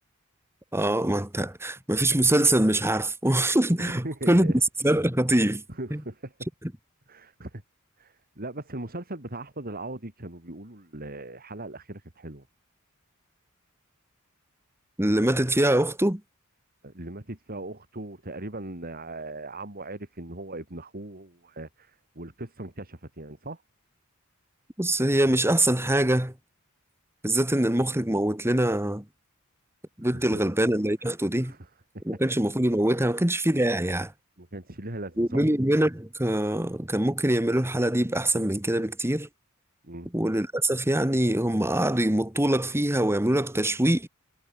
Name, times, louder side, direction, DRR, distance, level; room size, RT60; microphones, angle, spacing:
voice 1, 0.7-4.5 4.8-5.6 5.9-6.0 15.0-16.2 24.8-26.3 27.2-29.0 30.0-31.5 32.1-34.1 35.2-39.3 40.1-44.1, right 1 dB, 10° right, 2.2 m, -24 dB
voice 2, 3.8-4.6 5.7-6.3 7.1-7.6 8.0-12.5 16.8-23.6 30.1-30.5 31.0-31.1 31.4-31.7 33.0-33.2 34.4-35.5 39.8-40.1, right 2 dB, 45° right, 3.7 m, -39 dB
head